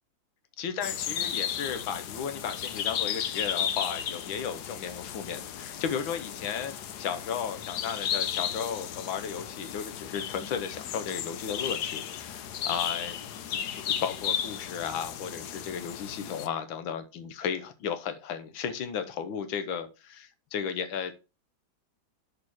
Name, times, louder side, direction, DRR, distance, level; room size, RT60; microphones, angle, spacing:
voice 1, 0.6-21.1, left 7 dB, 85° left, 9 dB, 1.8 m, -34 dB
sound 1, 0.8-16.5, left 9 dB, 65° left, 1.2 m, -34 dB
6.4 x 5.8 x 6.3 m, 0.30 s
omnidirectional pair, 2.1 m